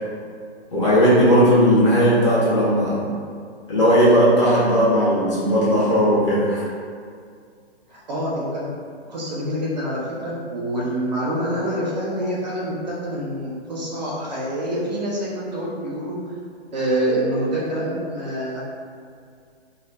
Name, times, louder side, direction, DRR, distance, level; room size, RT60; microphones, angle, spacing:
voice 1, 0.7-3.0 3.7-6.6, equal, 30° left, -9 dB, 0.5 m, -17 dB
voice 2, 7.9-8.7 9.1-16.2 16.7-18.6, right 1 dB, 40° right, -6 dB, 0.6 m, -26 dB
2.3 x 2.0 x 2.7 m, 2.2 s
figure-of-eight pair, 130°, 33 cm